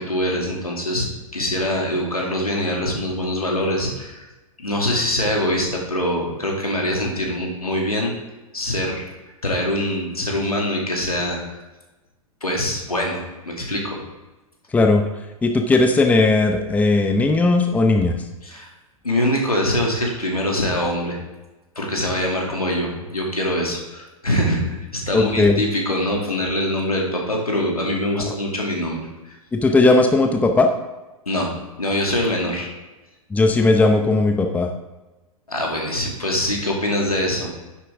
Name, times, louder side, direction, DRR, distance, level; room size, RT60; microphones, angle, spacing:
voice 1, 0.0-4.3 4.6-8.1 8.5-9.1 9.4-11.6 12.4-14.0 18.4-18.7 19.0-21.2 21.8-24.6 24.9-29.1 31.3-31.5 31.8-32.7 35.5-37.5, left 1 dB, 85° left, -1 dB, 2.5 m, -23 dB
voice 2, 15.4-18.2 25.1-25.6 28.2-28.3 29.5-30.7 33.3-34.7, left 3 dB, 10° left, 5 dB, 0.7 m, -17 dB
10.0 x 7.8 x 3.6 m, 1.1 s
figure-of-eight pair, 100°, 19 cm